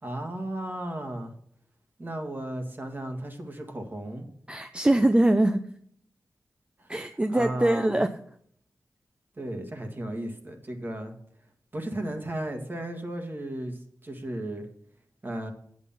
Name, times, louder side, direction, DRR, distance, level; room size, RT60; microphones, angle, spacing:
voice 1, 0.0-1.3 2.0-4.3 6.8-6.9 7.3-8.0 9.4-11.1 11.7-14.7 15.2-15.5, right 1 dB, 35° right, 4 dB, 2.0 m, -35 dB
voice 2, 4.5-5.6 6.9-8.1, right 1 dB, 20° right, 8 dB, 0.6 m, -22 dB
8.3 x 8.1 x 5.6 m, 0.65 s
wide cardioid pair, 80°, 6 cm